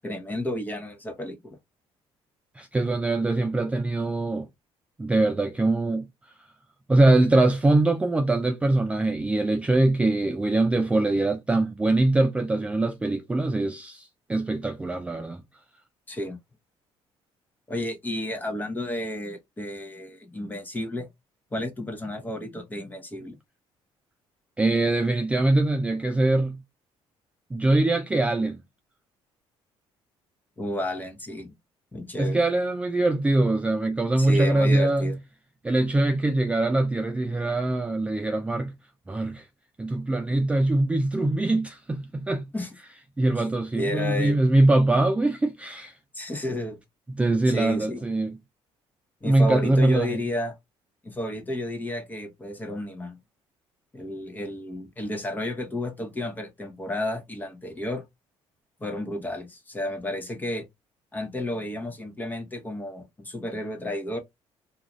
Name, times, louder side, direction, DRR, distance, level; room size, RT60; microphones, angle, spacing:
voice 1, 0.0-1.6 16.1-16.4 17.7-21.1 21.5-23.4 30.6-31.5 31.9-32.4 34.2-35.2 42.5-42.7 43.8-44.4 46.1-46.8 47.5-48.0 49.2-50.6 51.0-53.2 53.9-58.0 58.8-60.7 61.1-64.2, left 1 dB, 15° left, 0.8 m, -32 dB
voice 2, 2.6-4.5 5.0-6.1 6.9-15.4 24.6-26.6 27.5-28.6 32.2-35.2 35.6-38.7 39.1-39.5 39.8-42.4 43.2-45.9 47.1-48.4 49.3-50.2, right 2 dB, 10° right, 0.3 m, -23 dB
2.5 x 2.3 x 3.0 m
cardioid pair, 110°, 11 cm